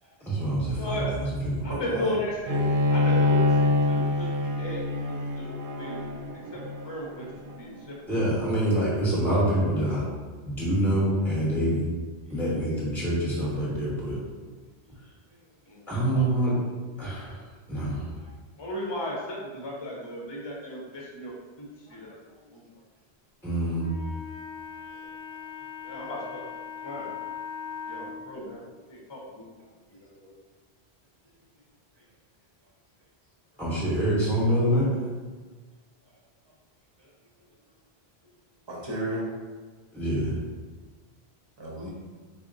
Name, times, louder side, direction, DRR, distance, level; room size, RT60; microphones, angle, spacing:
voice 1, 0.2-1.7 8.1-10.0 10.4-11.8 12.3-14.2 15.9-16.5 17.0-18.1 23.4-23.9 33.6-34.9 39.9-40.4, right 1 dB, 5° right, -8 dB, 1.0 m, -26 dB
voice 2, 0.8-1.1 1.6-2.6 2.9-5.5 5.7-6.0 6.3-6.6 6.8-7.3 7.5-8.0 15.7-15.8 16.1-16.2 18.6-22.1 22.5-22.6 25.8-26.4 26.8-27.1 27.9-28.6 28.9-29.5 29.8-30.3, left 1 dB, 30° left, -4 dB, 0.7 m, -35 dB
voice 3, 1.6-2.1 14.8-14.9 18.2-18.3 21.9-22.0 22.3-22.5 37.0-37.1 38.7-39.2 41.6-41.9, right 1 dB, 30° right, -3 dB, 0.7 m, -34 dB
Bowed string instrument, 2.5-7.8, left 2 dB, 65° right, 0.7 m, -25 dB
Wind instrument woodwind instrument, 23.8-28.1, left 6 dB, 65° left, 0.8 m, -39 dB
4.2 x 2.1 x 3.8 m, 1.4 s
omnidirectional pair, 1.1 m